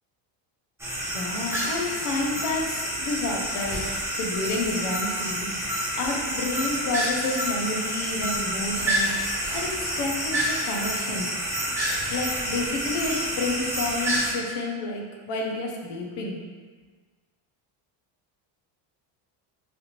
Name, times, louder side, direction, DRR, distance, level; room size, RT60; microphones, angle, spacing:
sound 1, 0.8-14.3, right 1 dB, 5° right, 0.6 m, -28 dB
voice 1, 1.1-5.7 6.0-11.3 12.0-16.4, left 2 dB, 60° left, 0 dB, 0.7 m, -30 dB
3.3 x 2.5 x 2.8 m, 1.5 s
cardioid pair, 150°, 46 cm